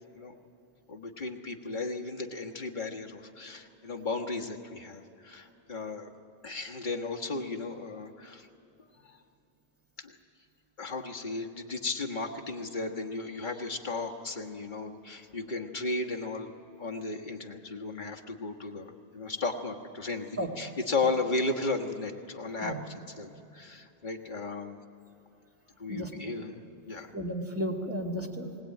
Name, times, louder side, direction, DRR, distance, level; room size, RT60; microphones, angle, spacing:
voice 1, 0.9-6.1 6.4-8.5 9.0-9.2 10.0-10.2 10.8-16.5 16.8-22.7 23.2-24.8 25.8-26.6 26.9-27.1, left 3 dB, 45° left, 2 dB, 1.5 m, -35 dB
voice 2, 27.1-28.6, equal, 10° right, -1 dB, 2.3 m, -33 dB
20.0 x 18.5 x 9.0 m, 2.8 s
omnidirectional pair, 1.2 m